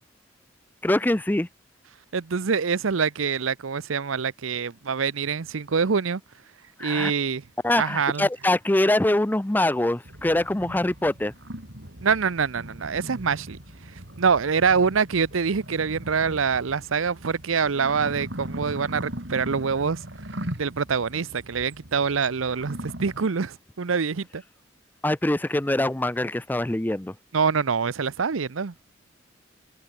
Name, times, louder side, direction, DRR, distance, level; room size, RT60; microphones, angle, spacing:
voice 1, 0.8-1.5 6.8-7.1 7.6-11.3 25.0-27.1, left 1 dB, 10° left, 0.5 m, -23 dB
voice 2, 2.1-6.2 6.8-7.4 7.8-8.3 12.0-13.6 14.2-20.0 20.6-24.4 27.3-28.7, right 5 dB, 90° right, 0.7 m, -25 dB
sound 1, 10.0-23.2, right 1 dB, 60° right, 5.1 m, -39 dB
head